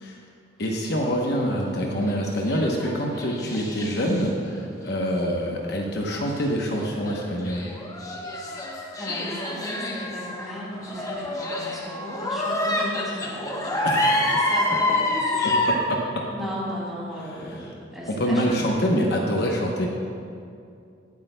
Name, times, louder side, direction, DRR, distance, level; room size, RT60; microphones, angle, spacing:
voice 1, 0.6-7.7 13.8-14.2 15.4-16.2 18.1-19.9, equal, 55° left, -1 dB, 0.9 m, -25 dB
sound 1, 2.1-4.5 4.9-5.0 6.1-15.8, left 1 dB, 20° left, 0.9 m, -27 dB
voice 2, 9.0-15.6 16.3-18.9, equal, ahead, -7 dB, 2.6 m, -35 dB
18.0 x 8.5 x 2.2 m, 2.4 s
head